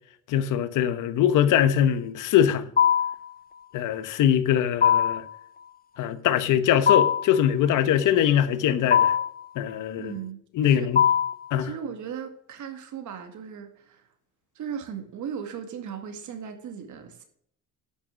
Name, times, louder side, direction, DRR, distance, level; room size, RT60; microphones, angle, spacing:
voice 1, 0.3-2.7 3.7-5.2 6.0-9.1 9.6-10.1 10.6-11.0 11.5-11.7, left 10 dB, 85° left, 1.1 m, -22 dB
sound 1, 2.8-3.3 4.8-5.3 6.9-7.3 8.9-9.4 11.0-11.4, left 8 dB, 30° left, 0.5 m, -20 dB
voice 2, 10.0-10.9 11.6-14.1 14.6-17.2, right 7 dB, 75° right, 2.2 m, -37 dB
11.5 x 6.3 x 6.4 m
cardioid pair, 90°, 30 cm